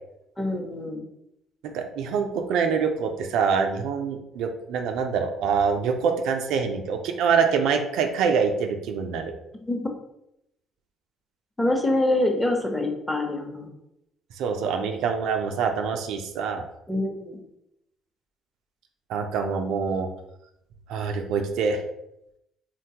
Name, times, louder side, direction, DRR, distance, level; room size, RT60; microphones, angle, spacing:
voice 1, 0.4-1.0 9.5-9.9 11.6-13.7 16.9-17.4, left 1 dB, 10° left, 2 dB, 0.7 m, -25 dB
voice 2, 1.6-9.3 14.4-16.7 19.1-20.1 20.9-21.8, right 6 dB, 75° right, 5 dB, 0.3 m, -25 dB
3.9 x 2.2 x 2.8 m, 0.82 s
supercardioid pair, 75°, 0 cm